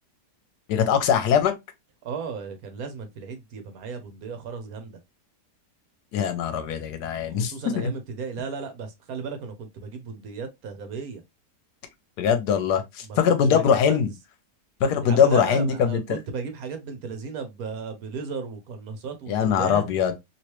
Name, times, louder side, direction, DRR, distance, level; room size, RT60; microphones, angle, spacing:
voice 1, 0.7-1.5 6.1-7.9 12.2-14.1 14.8-16.2 19.3-20.1, left 7 dB, 75° left, 1.2 m, -22 dB
voice 2, 2.0-5.0 7.3-11.2 13.0-14.0 15.0-19.9, right 5 dB, 65° right, 1.1 m, -35 dB
3.1 x 2.9 x 3.0 m
omnidirectional pair, 1.8 m